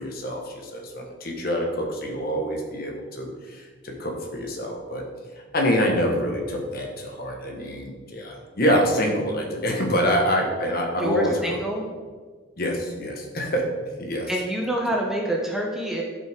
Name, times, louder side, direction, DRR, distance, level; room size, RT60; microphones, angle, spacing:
voice 1, 0.0-5.1 5.5-11.3 12.6-13.7 14.0-14.3, equal, 50° left, 1 dB, 1.4 m, -26 dB
voice 2, 11.0-11.8 14.3-16.0, right 1 dB, ahead, -1 dB, 0.7 m, -26 dB
11.5 x 5.4 x 3.7 m, 1.5 s
head